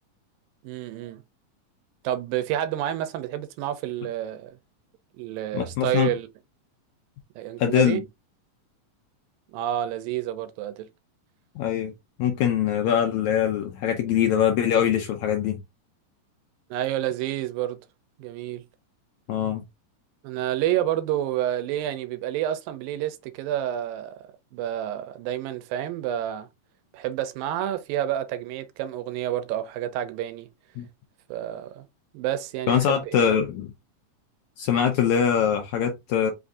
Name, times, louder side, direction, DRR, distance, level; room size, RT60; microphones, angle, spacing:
voice 1, 0.6-1.2 2.0-4.6 5.2-6.3 7.4-8.0 9.5-10.9 16.7-17.8 18.2-18.6 20.2-24.1 24.5-26.5 26.9-30.5 31.3-31.9 32.1-33.2, right 12 dB, 90° right, 2.4 m, -29 dB
voice 2, 5.5-6.1 7.6-8.0 11.6-11.9 12.2-15.6 19.3-19.6 30.8-30.9 32.7-33.7 34.6-36.3, left 9 dB, 80° left, 1.7 m, -23 dB
5.4 x 2.6 x 3.6 m
omnidirectional pair, 4.0 m